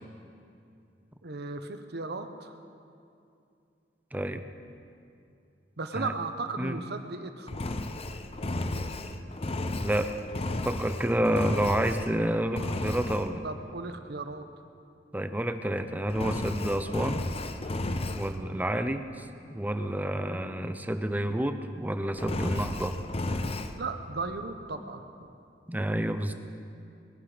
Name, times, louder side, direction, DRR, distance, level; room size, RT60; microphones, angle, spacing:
voice 1, 1.2-2.5 5.8-7.6 13.4-14.4 23.8-25.3, right 3 dB, 65° right, 8 dB, 1.1 m, -36 dB
voice 2, 4.1-4.4 5.9-6.1 6.6-6.8 9.8-10.1 10.6-13.4 15.1-17.2 18.0-19.2 19.5-23.0 25.7-26.3, right 1 dB, 10° right, 9 dB, 0.7 m, -29 dB
Engine, 7.5-12.2 12.5-13.3 16.1-18.4 22.2-23.7, left 2 dB, 35° left, 0.7 m, -33 dB
20.5 x 11.0 x 5.1 m, 2.5 s
head